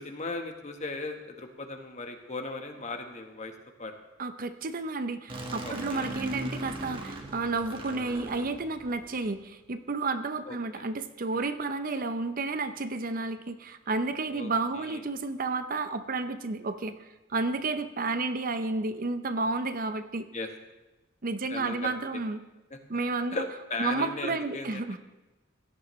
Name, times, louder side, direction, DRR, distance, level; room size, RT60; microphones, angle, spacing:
voice 1, 0.0-3.9 5.6-6.1 10.5-10.8 11.3-11.5 14.3-15.0 20.3-20.5 21.5-22.2 22.7-22.8 23.3-25.0, left 2 dB, 35° left, 5 dB, 1.2 m, -37 dB
voice 2, 4.2-17.0 17.3-20.3 21.2-22.4 22.9-23.4 23.8-25.0, right 3 dB, 45° right, 10 dB, 0.6 m, -31 dB
sound 1, 5.3-9.2, right 1 dB, 25° right, 1.5 m, -39 dB
16.5 x 12.0 x 3.2 m, 1.1 s
head